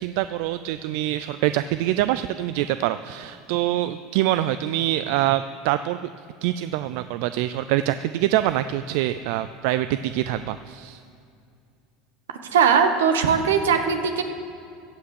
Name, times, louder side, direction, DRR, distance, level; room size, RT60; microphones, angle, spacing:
voice 1, 0.0-6.0 6.4-11.0, right 14 dB, 70° right, 12 dB, 0.3 m, -25 dB
voice 2, 12.5-14.2, right 6 dB, 90° right, 7 dB, 1.1 m, -19 dB
15.5 x 5.9 x 8.3 m, 2.5 s
hypercardioid pair, 90°, 0 cm